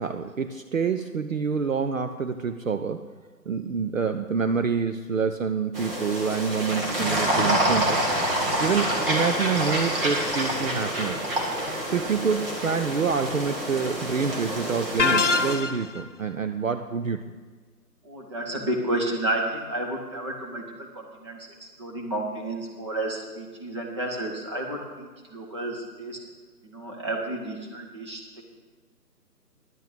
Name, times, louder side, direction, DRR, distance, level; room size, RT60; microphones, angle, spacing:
voice 1, 0.0-3.1 3.5-8.1 8.6-11.3 11.9-17.2, right 6 dB, 55° right, 8 dB, 0.6 m, -27 dB
sound 1, 5.7-15.6, right 1 dB, 35° right, 2.0 m, -27 dB
sound 2, 15.0-16.0, left 4 dB, 50° left, 0.4 m, -23 dB
voice 2, 18.0-26.3 26.6-28.4, right 1 dB, 15° right, 0 dB, 1.0 m, -31 dB
11.0 x 7.9 x 6.8 m, 1.4 s
figure-of-eight pair, 155°, 50 cm